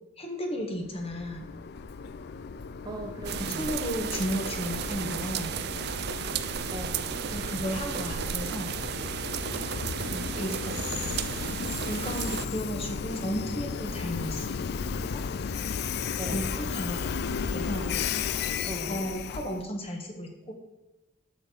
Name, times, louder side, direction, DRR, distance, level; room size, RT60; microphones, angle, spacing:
voice 1, 0.2-1.5 3.5-5.5 7.3-8.7 10.4-10.7 11.9-14.5 15.1-15.2 16.3-17.1 17.5-18.0 18.9-20.5, equal, 30° left, 2 dB, 1.2 m, -34 dB
Train, 0.9-19.6, left 6 dB, 55° left, 0.4 m, -34 dB
voice 2, 2.8-3.7 6.7-7.1 10.0-10.3 16.2-16.4 18.6-18.9, right 1 dB, 20° right, 2 dB, 1.0 m, -39 dB
sound 1, 3.2-12.5, right 8 dB, 55° right, 0.4 m, -34 dB
7.0 x 6.8 x 4.0 m, 1.0 s
head